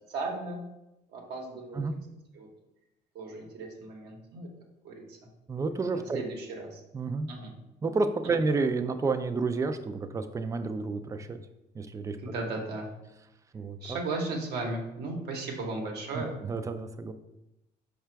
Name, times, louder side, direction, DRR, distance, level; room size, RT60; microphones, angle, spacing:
voice 1, 0.1-0.6 1.1-1.8 2.3-2.5 3.1-4.5 4.8-5.2 5.9-6.8 7.3-7.5 12.2-12.9 13.8-16.4, right 2 dB, 75° right, 0 dB, 0.9 m, -36 dB
voice 2, 5.5-6.2 6.9-7.3 7.8-11.4 11.7-12.2 13.5-14.0 16.1-17.1, right 3 dB, 20° right, 8 dB, 0.3 m, -30 dB
4.8 x 2.3 x 4.5 m, 0.92 s
cardioid pair, 110°, 17 cm